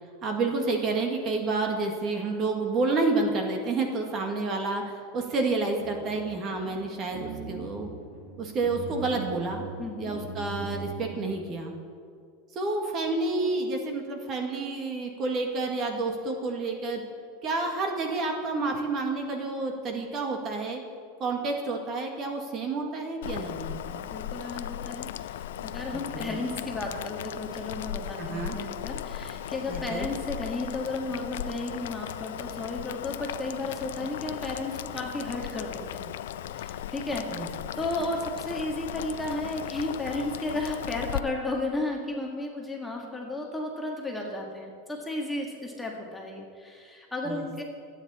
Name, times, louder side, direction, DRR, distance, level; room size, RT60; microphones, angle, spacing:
voice 1, 0.2-7.9 8.4-9.7 10.0-11.7 12.5-17.0 17.4-20.8 21.2-24.1 26.1-26.4 28.2-28.5 29.7-30.1 37.3-37.5 47.2-47.5, right 3 dB, 30° right, 3 dB, 1.9 m, -29 dB
sound 1, 5.8-11.4, right 4 dB, 50° right, 3.0 m, -40 dB
voice 2, 9.8-10.1 24.1-36.1 36.5-47.6, left 2 dB, 5° left, -1 dB, 1.8 m, -34 dB
Boiling, 23.2-41.2, left 11 dB, 85° left, 0.5 m, -37 dB
26.0 x 9.4 x 4.3 m, 2.3 s
supercardioid pair, 155°, 0 cm